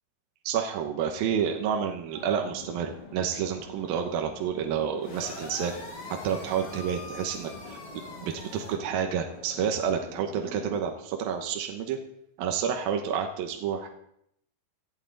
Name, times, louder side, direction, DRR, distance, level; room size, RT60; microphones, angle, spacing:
voice 1, 0.4-5.7 6.1-12.0 12.4-13.9, right 8 dB, 70° right, 3 dB, 2.6 m, -29 dB
sound 1, 2.1-10.8, left 3 dB, 85° left, 7.5 m, -46 dB
sound 2, 5.0-8.7, left 3 dB, 45° left, 3.3 m, -44 dB
18.0 x 12.5 x 3.9 m, 0.74 s
omnidirectional pair, 4.8 m